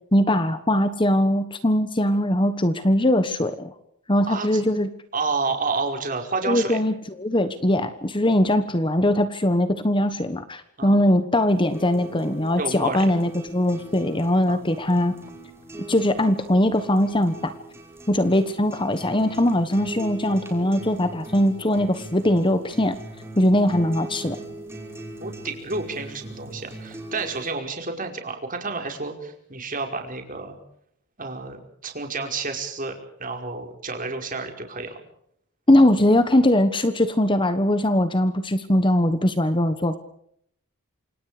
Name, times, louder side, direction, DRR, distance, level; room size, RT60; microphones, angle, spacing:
voice 1, 0.1-3.7 4.1-4.9 6.4-15.1 15.9-17.5 18.1-23.0 23.4-24.4 35.7-40.0, left 1 dB, 20° left, 11 dB, 1.3 m, -21 dB
voice 2, 4.3-4.6 5.1-6.8 10.8-10.9 12.6-13.1 14.5-14.6 25.2-30.6 31.2-35.0, right 3 dB, 35° right, 4 dB, 5.1 m, -30 dB
sound 1, 11.5-27.5, right 1 dB, 10° right, 5.5 m, -40 dB
28.5 x 26.5 x 5.1 m, 0.69 s
head